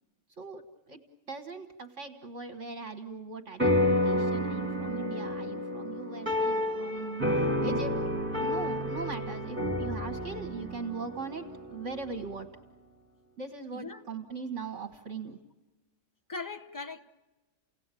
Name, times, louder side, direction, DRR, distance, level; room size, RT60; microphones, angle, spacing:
voice 1, 0.4-1.0 1.3-7.9 8.4-12.5 13.4-15.4, right 4 dB, 45° right, 1.5 m, -40 dB
sound 1, 3.6-12.3, left 1 dB, 5° right, 2.9 m, -30 dB
voice 2, 16.3-17.0, left 4 dB, 25° left, 0.4 m, -39 dB
30.0 x 17.5 x 9.0 m
omnidirectional pair, 1.9 m